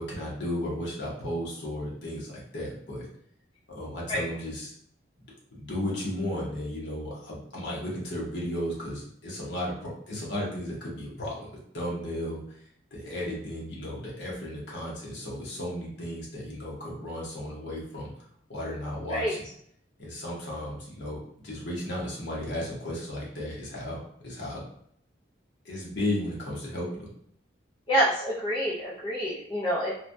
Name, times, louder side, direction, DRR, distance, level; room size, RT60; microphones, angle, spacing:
voice 1, 0.0-3.1 3.7-4.7 5.5-11.5 11.7-12.4 12.9-18.1 18.5-19.5 20.0-24.6 25.6-27.1, left 1 dB, 65° left, -4 dB, 1.0 m, -34 dB
voice 2, 27.9-28.7 29.0-29.9, equal, 25° left, -7 dB, 0.5 m, -26 dB
3.1 x 2.2 x 2.6 m, 0.67 s
head